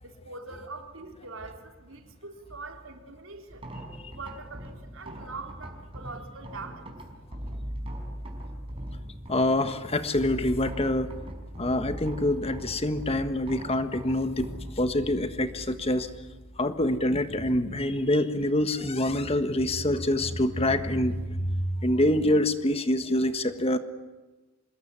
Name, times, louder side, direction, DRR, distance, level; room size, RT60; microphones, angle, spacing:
voice 1, 0.0-3.7 4.1-6.9, right 3 dB, 85° right, 4 dB, 3.9 m, -43 dB
sound 1, 3.5-17.8, equal, 30° right, 5.2 m, -40 dB
voice 2, 9.3-11.1 11.6-14.5 14.8-16.1 16.6-23.8, left 1 dB, 30° left, 10 dB, 1.5 m, -26 dB
26.0 x 21.0 x 9.9 m, 1.2 s
head